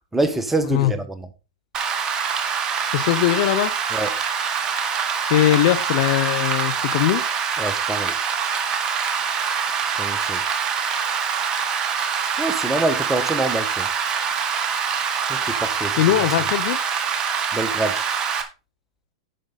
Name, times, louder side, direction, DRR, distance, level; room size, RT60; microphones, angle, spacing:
voice 1, 0.1-1.3 3.9-4.2 7.6-8.2 9.8-10.5 12.4-13.9 15.3-16.3 17.5-18.0, right 2 dB, 10° right, 1.5 m, -26 dB
Rain, 1.7-18.4, right 6 dB, 30° right, 1.7 m, -24 dB
voice 2, 2.9-3.7 5.3-7.2 16.0-16.8, left 13 dB, 55° left, 1.0 m, -20 dB
10.0 x 6.7 x 4.1 m
hypercardioid pair, 115°, 3 cm